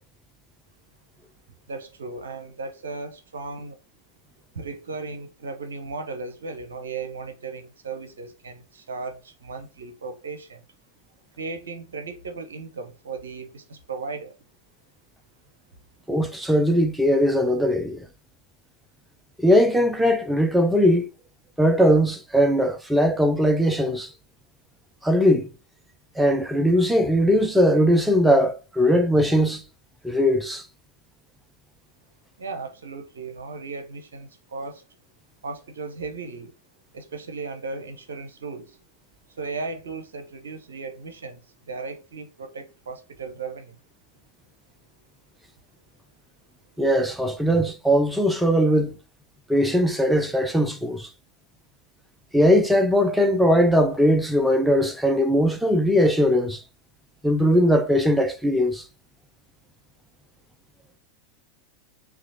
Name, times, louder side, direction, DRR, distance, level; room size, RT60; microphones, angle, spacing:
voice 1, 1.7-3.8 4.5-10.6 11.4-14.4 32.4-34.8 35.4-36.5 36.9-38.8 39.3-43.8, right 4 dB, 65° right, 0.7 m, -36 dB
voice 2, 16.1-18.0 19.4-21.1 21.6-24.1 25.0-25.5 26.2-29.6 30.0-30.6 46.8-49.0 49.5-51.1 52.3-56.6 57.2-58.8, equal, 5° right, 0.6 m, -20 dB
5.8 x 2.5 x 2.7 m
figure-of-eight pair, 90°, 0 cm